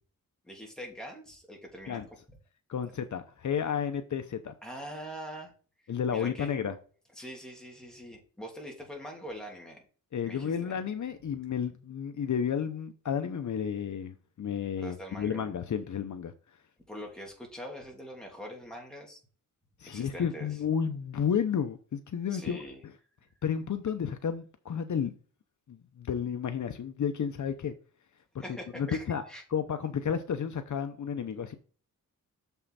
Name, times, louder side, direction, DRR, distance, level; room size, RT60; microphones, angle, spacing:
voice 1, 0.4-2.0 4.6-5.5 5.8-6.5 7.2-9.8 10.2-10.7 14.8-15.4 16.9-19.2 19.9-20.5 22.3-22.8 28.4-29.4, equal, ahead, 2.9 m, -43 dB
voice 2, 2.7-4.5 5.9-6.7 10.1-16.3 19.8-22.6 23.4-25.1 25.7-27.7 28.8-29.2 29.5-31.5, left 7 dB, 65° left, 0.8 m, -32 dB
7.0 x 5.6 x 4.1 m
wide cardioid pair, 110°, 32 cm